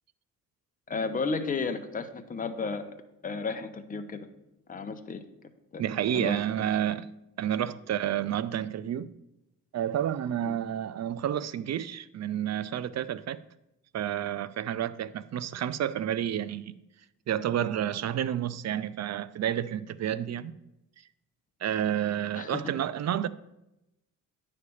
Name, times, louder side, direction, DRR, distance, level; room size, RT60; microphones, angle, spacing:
voice 1, 0.9-2.9 3.2-4.3 4.7-5.2 5.7-5.8 6.1-6.4 10.4-10.5 22.3-22.6, left 4 dB, 25° left, 0.7 m, -33 dB
voice 2, 5.8-7.1 7.4-9.1 9.7-13.4 13.9-16.7 17.3-20.5 21.6-23.3, right 10 dB, 50° right, 0.4 m, -30 dB
9.6 x 3.3 x 6.8 m
cardioid pair, 95°, 33 cm